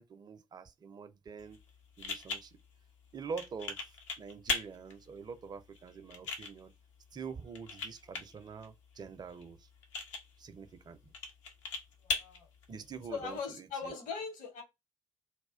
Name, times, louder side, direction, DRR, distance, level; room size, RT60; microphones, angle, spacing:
voice 1, 0.0-1.6 2.0-2.6 3.1-3.9 4.2-6.7 7.1-9.7 10.4-11.0 12.7-14.0, right 5 dB, 25° right, 0.4 m, -45 dB
sound 1, 1.4-13.4, left 4 dB, 75° left, 0.5 m, -41 dB
voice 2, 12.0-12.5 13.1-14.6, left 5 dB, 55° left, 0.9 m, -40 dB
2.2 x 2.1 x 3.4 m
figure-of-eight pair, 40°, 16 cm